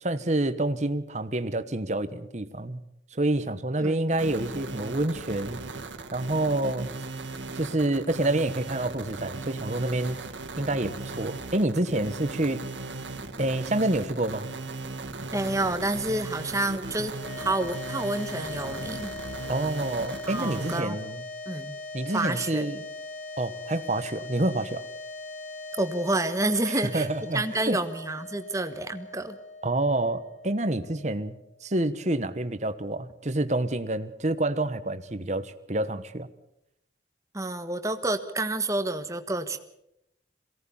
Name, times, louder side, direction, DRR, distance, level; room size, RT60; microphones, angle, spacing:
voice 1, 0.0-2.8 3.1-5.6 6.1-6.9 7.5-10.2 10.6-12.6 13.4-14.5 19.5-21.2 21.9-22.8 23.4-24.8 26.7-27.8 29.6-31.3 31.6-36.3, right 2 dB, 40° right, 11 dB, 1.2 m, -28 dB
sound 1, 4.1-20.8, right 3 dB, 90° right, 2.0 m, -37 dB
voice 2, 15.3-19.1 20.3-21.0 21.5-21.8 22.1-22.7 25.7-27.1 27.3-29.4 37.3-39.6, right 2 dB, 15° right, 8 dB, 1.3 m, -29 dB
sound 2, 17.2-31.6, left 3 dB, 40° left, 2.1 m, -40 dB
23.0 x 17.5 x 7.2 m, 0.80 s
head